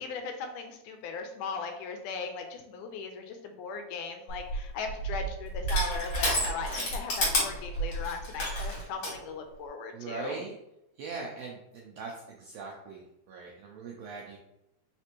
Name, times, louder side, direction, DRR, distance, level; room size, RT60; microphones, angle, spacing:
voice 1, 0.0-10.4, left 5 dB, 85° left, 5 dB, 2.1 m, -38 dB
Crushing, 4.3-9.2, equal, 50° left, 2.3 m, -30 dB
voice 2, 9.9-10.6 11.0-14.4, right 4 dB, 90° right, -1 dB, 1.5 m, -41 dB
4.8 x 3.3 x 3.0 m, 0.85 s
omnidirectional pair, 3.6 m